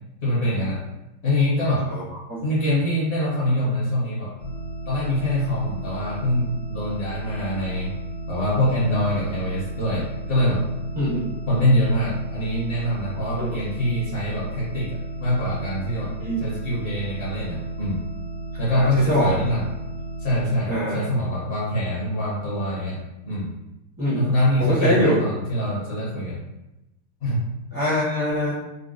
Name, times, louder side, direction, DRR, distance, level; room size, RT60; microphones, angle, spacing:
voice 1, 0.2-0.8 1.2-1.9 2.4-4.6 4.9-8.0 8.3-10.6 11.5-18.0 18.6-19.7 20.2-23.0 23.2-23.5 24.1-26.4 27.2-27.5, left 1 dB, 50° left, -7 dB, 0.9 m, -24 dB
sound 1, 4.4-20.4, right 2 dB, 65° right, 1.4 m, -34 dB
voice 2, 18.7-19.4 20.7-21.0 24.0-24.3 24.6-25.2 27.7-28.5, equal, 20° right, -10 dB, 0.5 m, -23 dB
3.9 x 2.1 x 2.5 m, 0.94 s
omnidirectional pair, 2.0 m